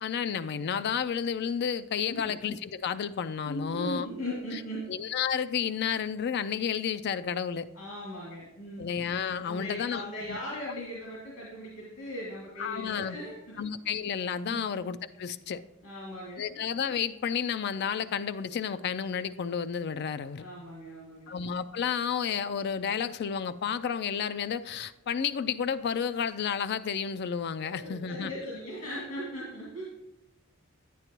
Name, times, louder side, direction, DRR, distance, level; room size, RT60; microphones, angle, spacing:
voice 1, 0.0-4.1 4.5-4.6 4.9-7.7 8.8-10.0 10.3-10.4 12.6-13.2 13.6-15.6 16.4-20.5 21.3-28.3, left 7 dB, 50° left, 0.3 m, -31 dB
voice 2, 3.5-4.9 7.7-8.9 9.4-13.7 14.5-14.7 15.8-16.6 20.4-21.3 27.6-29.8, equal, 90° left, 2.3 m, -39 dB
9.8 x 9.2 x 3.0 m
head